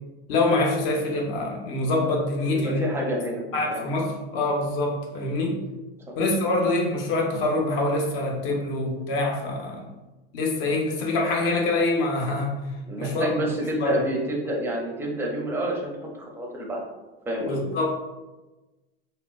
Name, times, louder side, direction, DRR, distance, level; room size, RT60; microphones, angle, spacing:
voice 1, 0.3-2.8 3.5-5.6 6.2-9.9 10.3-12.6 13.0-13.3 13.8-14.0 17.4-18.0, left 2 dB, 60° left, 0 dB, 0.9 m, -25 dB
voice 2, 2.4-3.8 12.9-16.9 17.3-17.6, right 1 dB, 5° right, -2 dB, 0.5 m, -29 dB
3.7 x 2.1 x 2.3 m, 1.1 s
supercardioid pair, 120°, 32 cm